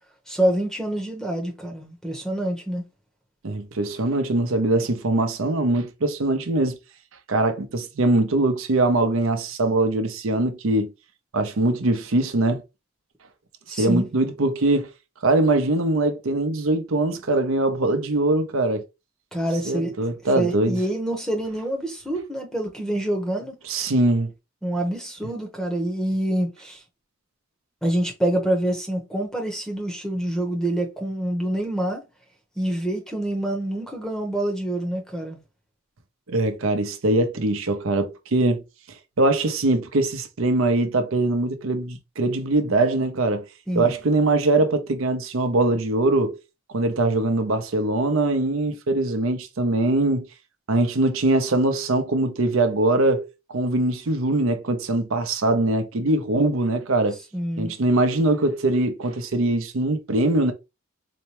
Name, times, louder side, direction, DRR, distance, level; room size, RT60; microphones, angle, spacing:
voice 1, 0.3-2.8 13.7-14.1 19.3-19.9 20.4-23.6 24.6-26.8 27.8-32.0 32.6-35.4 43.7-43.9 57.3-57.7, right 1 dB, 5° left, 0.9 m, -26 dB
voice 2, 3.4-6.8 7.3-10.9 11.3-12.6 13.7-14.9 15.2-18.8 19.6-20.8 23.7-24.3 36.3-38.6 39.2-43.5 43.8-46.4 46.7-50.3 50.7-57.2 57.6-60.5, right 2 dB, 70° right, 0.7 m, -22 dB
4.2 x 2.2 x 2.9 m
head